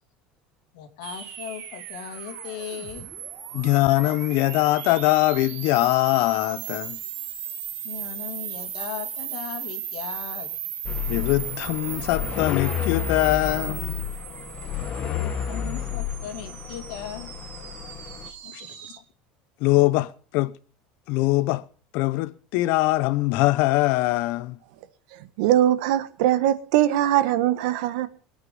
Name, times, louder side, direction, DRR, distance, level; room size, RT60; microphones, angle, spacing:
voice 1, 0.7-3.1 7.8-10.5 15.0-17.3 18.2-18.9, left 10 dB, 90° left, 2.5 m, -38 dB
sound 1, 1.0-19.0, right 10 dB, 50° right, 1.9 m, -37 dB
voice 2, 3.5-7.0 11.1-14.0 18.5-18.6 19.6-20.5 21.1-21.6 21.9-24.6, left 18 dB, 60° left, 0.7 m, -22 dB
sound 2, 10.8-18.3, left 9 dB, 35° left, 1.3 m, -31 dB
voice 3, 25.4-28.1, right 12 dB, 75° right, 1.3 m, -21 dB
21.5 x 8.9 x 5.3 m
cardioid pair, 160°, 4 cm